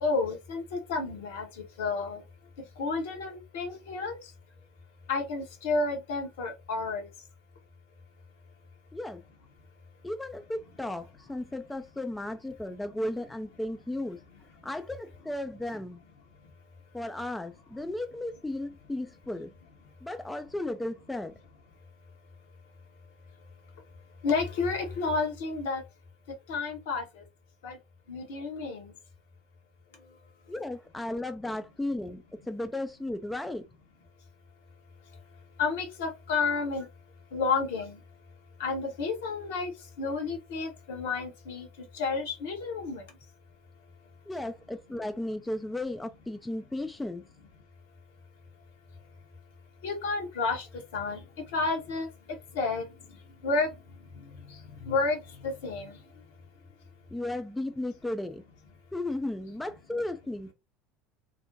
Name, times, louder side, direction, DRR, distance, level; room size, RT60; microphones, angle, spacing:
voice 1, 0.0-1.5 1.8-2.2 2.8-4.2 5.1-7.0 24.2-25.8 26.5-27.0 27.6-27.8 28.1-28.9 35.6-36.9 37.3-38.0 38.6-39.7 40.0-41.7 41.9-43.0 49.8-50.7 50.9-51.2 51.5-52.1 52.5-52.9 53.4-53.7 54.8-55.9, left 4 dB, 65° left, 0.8 m, -30 dB
voice 2, 8.9-9.2 10.0-14.2 14.6-16.0 16.9-19.5 20.0-21.3 30.5-33.6 44.3-47.2 57.1-58.4 58.9-60.5, left 1 dB, 10° left, 0.3 m, -35 dB
2.5 x 2.1 x 2.6 m
figure-of-eight pair, 70°, 0 cm